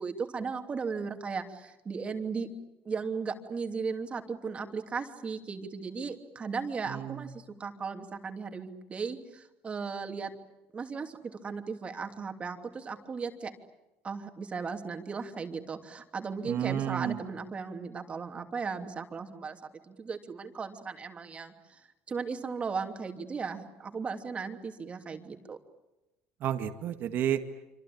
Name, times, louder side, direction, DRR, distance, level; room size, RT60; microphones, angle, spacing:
voice 1, 0.0-2.5 2.8-10.3 10.7-11.2 11.4-13.5 14.0-19.6 19.9-25.6, right 5 dB, 30° right, 5 dB, 2.9 m, -36 dB
voice 2, 6.9-7.3 16.4-17.2 26.4-27.4, right 10 dB, 55° right, 7 dB, 2.0 m, -31 dB
26.5 x 26.0 x 8.7 m, 0.94 s
supercardioid pair, 105°, 4 cm